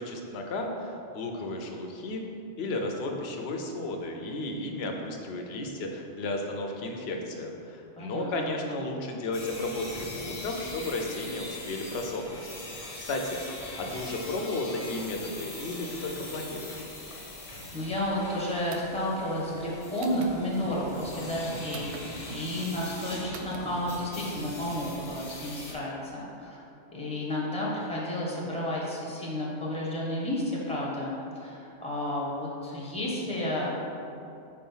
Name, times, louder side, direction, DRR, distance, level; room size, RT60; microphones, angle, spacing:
voice 1, 0.0-2.2 2.6-12.5 13.1-16.8, left 2 dB, 65° left, 2 dB, 0.9 m, -33 dB
voice 2, 8.0-8.6 17.7-26.6 26.9-33.7, left 1 dB, 5° left, -5 dB, 1.1 m, -32 dB
sound 1, 9.3-25.7, left 1 dB, 35° left, 0.9 m, -41 dB
sound 2, 18.7-19.0 20.0-20.3 21.7-22.0 23.3-23.6, right 6 dB, 75° right, 0.8 m, -44 dB
4.6 x 4.5 x 5.5 m, 2.7 s
omnidirectional pair, 1.2 m